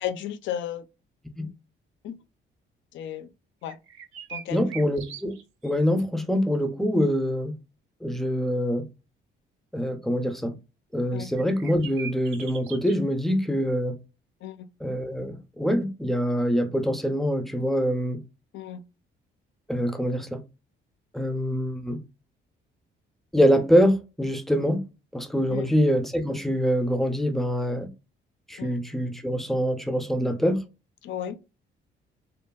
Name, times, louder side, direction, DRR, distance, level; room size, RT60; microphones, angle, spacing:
voice 1, 0.0-0.9 2.0-2.1 2.9-3.3 3.6-3.8 4.3-4.7 11.1-11.3 14.4-14.7 18.5-18.8 25.5-25.7 28.6-28.8 31.0-31.4, left 10 dB, 70° left, 0.4 m, -34 dB
sound 1, 3.6-5.7 6.0-6.1 11.4-13.0, right 8 dB, 85° right, 0.5 m, -41 dB
voice 2, 4.5-5.3 5.6-7.6 8.0-8.9 9.7-10.5 10.9-14.0 14.8-18.2 19.7-20.4 21.1-22.0 23.3-24.8 25.1-27.9 28.5-30.6, equal, ahead, 0.4 m, -24 dB
2.7 x 2.4 x 2.2 m
cardioid pair, 90°, 20 cm